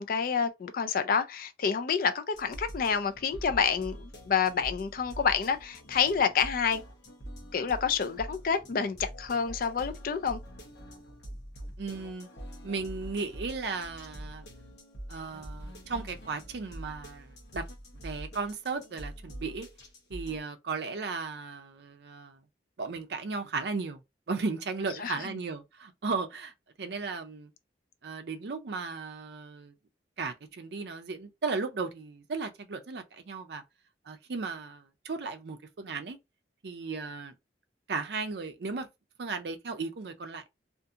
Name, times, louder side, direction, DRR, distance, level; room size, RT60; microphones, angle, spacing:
voice 1, 0.0-6.8 7.5-10.4 25.0-25.4, left 6 dB, 50° left, 0.4 m, -28 dB
sound 1, 2.3-20.4, equal, 70° left, 0.9 m, -45 dB
voice 2, 11.8-12.3 12.6-14.4 15.1-17.7 18.0-19.7 20.1-22.4 22.8-24.0 24.3-26.5 26.8-27.5 28.0-29.7 30.2-33.6 34.1-36.2 36.6-37.3 37.9-38.9 39.2-40.4, right 4 dB, 65° right, 0.5 m, -35 dB
2.7 x 2.5 x 2.4 m
head